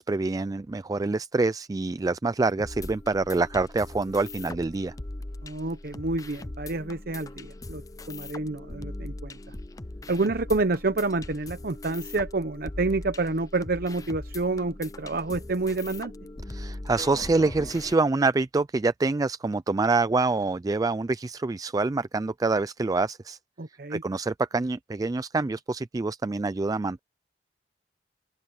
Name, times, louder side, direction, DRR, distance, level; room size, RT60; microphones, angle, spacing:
voice 1, 0.0-4.9 16.5-23.4 23.9-27.0, right 3 dB, 20° right, 0.3 m, -26 dB
sound 1, 2.6-17.9, left 2 dB, 20° left, 0.6 m, -40 dB
voice 2, 5.4-7.8 8.1-9.5 10.1-16.1 23.6-24.0, right 3 dB, 60° right, 0.8 m, -28 dB
open air
head